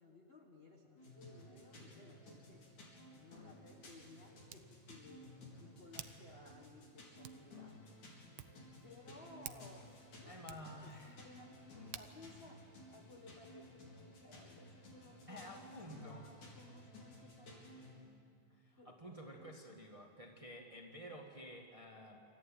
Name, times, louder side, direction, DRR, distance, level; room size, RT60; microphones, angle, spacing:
voice 1, 0.0-2.7 3.1-5.3 5.6-8.0 8.8-18.3 18.8-19.7, left 2 dB, 35° left, 1 dB, 1.1 m, -59 dB
sound 1, 1.0-17.9, left 1 dB, 90° left, 5.6 m, -56 dB
Hands, 2.9-13.7, right 11 dB, 85° right, 1.1 m, -57 dB
voice 2, 10.2-11.2 15.3-16.2 18.5-22.2, equal, 15° right, 1 dB, 1.5 m, -51 dB
26.5 x 14.0 x 9.2 m, 2.4 s
omnidirectional pair, 3.3 m